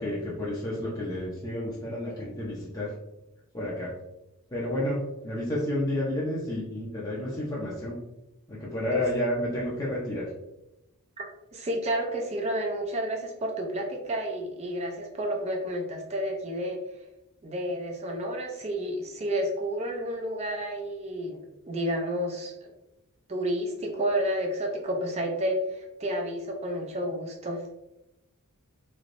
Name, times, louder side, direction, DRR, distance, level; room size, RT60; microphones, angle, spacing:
voice 1, 0.0-2.9 3.5-3.9 4.5-8.0 8.5-10.3, left 1 dB, 15° left, -7 dB, 0.6 m, -30 dB
voice 2, 11.5-16.8 17.4-21.4 21.7-22.5 23.3-27.6, equal, 30° right, 2 dB, 0.5 m, -30 dB
3.3 x 3.0 x 2.5 m, 0.90 s
head